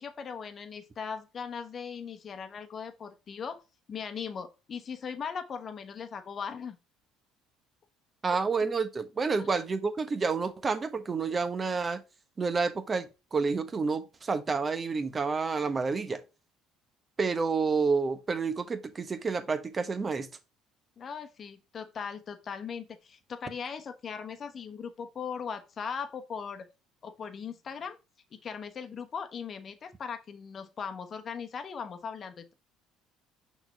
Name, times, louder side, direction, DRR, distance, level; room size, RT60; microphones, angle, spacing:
voice 1, 0.0-3.6 3.9-6.8 8.3-8.4 9.4-9.5 21.0-26.7 27.0-28.0 28.3-32.5, left 6 dB, 45° left, 1.0 m, -39 dB
voice 2, 8.2-12.0 12.4-16.2 17.2-20.3, right 4 dB, 30° right, 1.1 m, -29 dB
6.0 x 4.2 x 4.1 m
hypercardioid pair, 65°, 0 cm